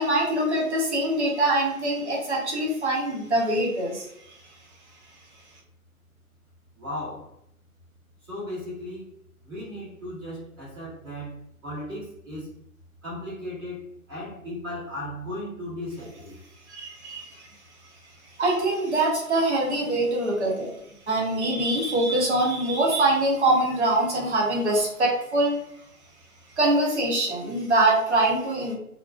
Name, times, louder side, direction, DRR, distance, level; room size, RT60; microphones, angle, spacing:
voice 1, 0.0-4.4 16.7-17.5 18.4-20.7 21.1-25.6 26.6-28.7, right 2 dB, 50° right, -1 dB, 0.9 m, -24 dB
voice 2, 6.7-7.3 8.2-9.1 9.4-12.5 13.0-16.4, left 1 dB, 15° right, -10 dB, 0.8 m, -36 dB
2.5 x 2.1 x 2.4 m, 0.74 s
figure-of-eight pair, 145°, 44 cm